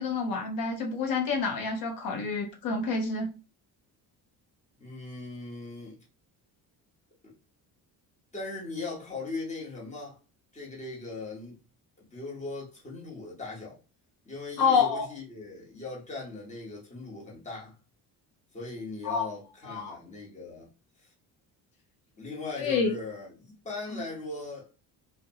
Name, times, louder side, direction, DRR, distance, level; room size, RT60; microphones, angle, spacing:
voice 1, 0.0-3.3 14.6-15.1 19.0-19.3 19.7-19.9 22.6-22.9, left 5 dB, 65° left, 0.7 m, -28 dB
voice 2, 4.8-6.0 8.3-10.2 10.5-11.6 12.0-13.8 14.3-17.7 18.5-20.7 21.0-21.1 22.2-24.7, left 3 dB, 20° left, 0.9 m, -39 dB
2.6 x 2.1 x 2.7 m
cardioid pair, 155°, 38 cm